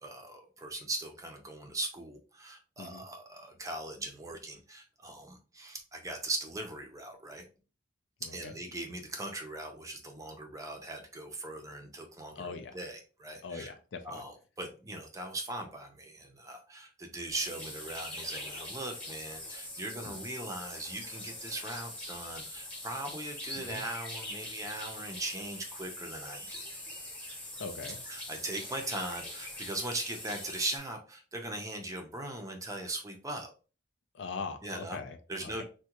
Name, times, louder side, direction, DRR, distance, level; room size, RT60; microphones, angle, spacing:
voice 1, 0.0-7.4 8.3-13.7 14.0-26.6 28.1-33.5 34.6-35.0 35.3-35.6, right 2 dB, 15° right, 3 dB, 0.5 m, -40 dB
voice 2, 8.2-8.5 12.4-12.8 13.4-14.2 20.0-20.2 23.5-23.8 27.6-28.0 34.1-35.6, left 4 dB, 70° left, 8 dB, 0.4 m, -41 dB
sound 1, 17.3-30.8, left 1 dB, 5° left, 0.9 m, -43 dB
3.5 x 2.2 x 2.9 m, 0.35 s
head